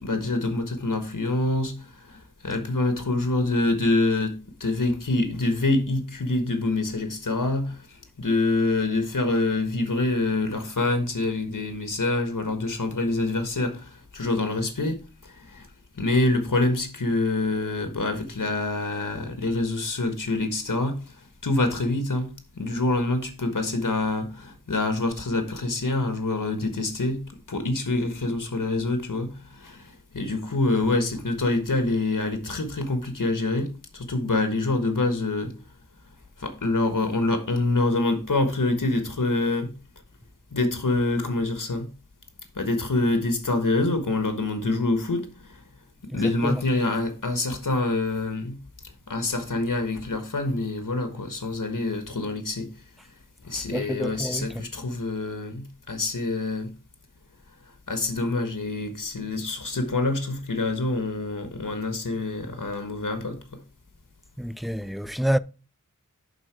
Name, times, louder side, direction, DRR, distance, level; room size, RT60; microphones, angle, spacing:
voice 1, 0.0-7.8 8.2-15.0 15.5-15.7 16.0-21.0 21.4-27.2 27.5-35.5 36.4-39.7 40.5-41.9 42.5-45.5 46.1-48.6 49.1-52.7 53.4-56.7 57.9-63.4, left 2 dB, 75° left, 1.3 m, -26 dB
voice 2, 46.1-46.6 53.7-54.6 64.4-65.4, equal, ahead, 0.4 m, -28 dB
11.0 x 3.7 x 4.6 m
wide cardioid pair, 40°, 32 cm